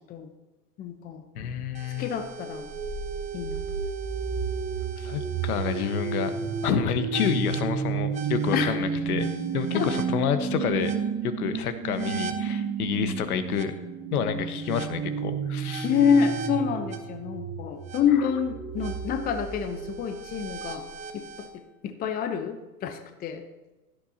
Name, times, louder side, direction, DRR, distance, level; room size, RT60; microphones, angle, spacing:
voice 1, 0.8-1.2 2.0-2.7 3.3-3.6 8.5-8.8 9.7-9.9 15.8-20.8 21.1-23.4, left 7 dB, 20° left, 6 dB, 0.8 m, -27 dB
voice 2, 1.3-2.1 5.0-10.9 11.2-13.7 14.1-15.9, left 8 dB, 65° left, 9 dB, 1.4 m, -29 dB
sound 1, 1.7-21.5, right 6 dB, 15° right, 0.7 m, -32 dB
16.5 x 12.0 x 2.8 m, 1.1 s
hypercardioid pair, 120°, 48 cm